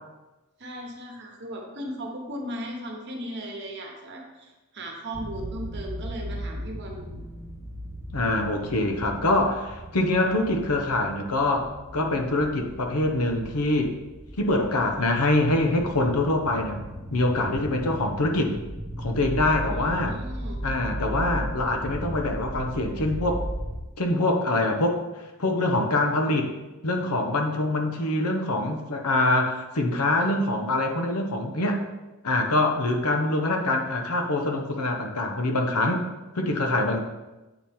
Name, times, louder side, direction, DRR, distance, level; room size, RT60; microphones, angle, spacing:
voice 1, 0.6-7.2 19.7-20.6, right 1 dB, 50° right, 1 dB, 1.1 m, -37 dB
sound 1, 5.1-23.8, equal, 10° left, 0.8 m, -36 dB
voice 2, 8.1-13.9 14.4-16.8 17.1-18.6 19.0-20.2 20.6-23.4 24.0-25.0 25.4-26.5 26.8-31.8 32.2-36.0 36.3-37.0, left 2 dB, 90° left, 4 dB, 0.9 m, -24 dB
8.0 x 4.3 x 3.6 m, 1.1 s
head